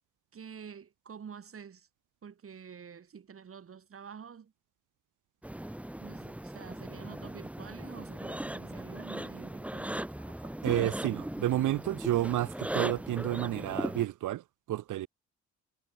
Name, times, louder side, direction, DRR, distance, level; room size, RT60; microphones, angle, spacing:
voice 1, 0.3-1.9 2.2-4.5 6.0-10.6, right 7 dB, 45° right, 7.8 m, -48 dB
sound 1, 5.4-14.1, right 1 dB, 5° right, 1.7 m, -38 dB
voice 2, 10.6-15.1, right 14 dB, 85° right, 6.0 m, -30 dB
cardioid pair, 90°, 30 cm